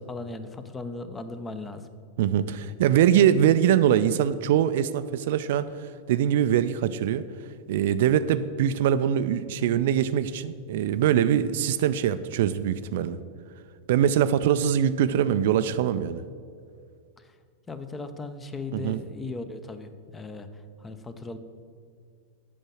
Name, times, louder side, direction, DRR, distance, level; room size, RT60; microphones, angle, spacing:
voice 1, 0.1-1.8 17.7-20.5 20.8-21.4, left 3 dB, 15° left, 10 dB, 0.7 m, -37 dB
voice 2, 2.2-7.2 7.7-13.2 13.9-16.2 18.7-19.0, right 10 dB, 55° right, 13 dB, 0.3 m, -23 dB
8.8 x 6.2 x 6.3 m, 2.2 s
figure-of-eight pair, 90°, 0 cm